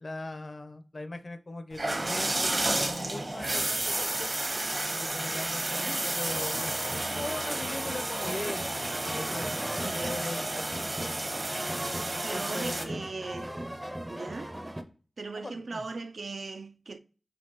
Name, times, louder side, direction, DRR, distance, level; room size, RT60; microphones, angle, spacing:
voice 1, 0.0-10.7 12.1-13.1 15.4-15.8, left 2 dB, 60° left, 0.5 m, -40 dB
sound 1, 1.7-12.8, right 1 dB, 50° right, 0.9 m, -32 dB
voice 2, 5.6-6.0 9.8-10.2 12.2-13.6 14.1-14.5 15.2-17.0, right 3 dB, 85° right, 0.3 m, -39 dB
sound 2, 6.3-14.8, right 1 dB, 15° right, 0.5 m, -38 dB
5.2 x 2.7 x 2.8 m
wide cardioid pair, 60°, 0 cm